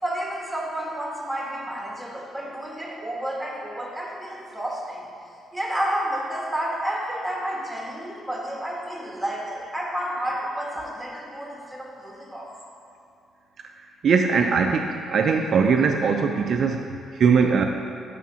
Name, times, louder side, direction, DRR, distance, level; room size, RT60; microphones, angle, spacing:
voice 1, 0.0-5.0 5.5-12.5, right 1 dB, ahead, -3 dB, 1.5 m, -30 dB
voice 2, 14.0-16.8 17.2-17.7, right 5 dB, 60° right, 3 dB, 0.4 m, -20 dB
5.8 x 4.7 x 5.5 m, 2.5 s
cardioid pair, 90°, 0 cm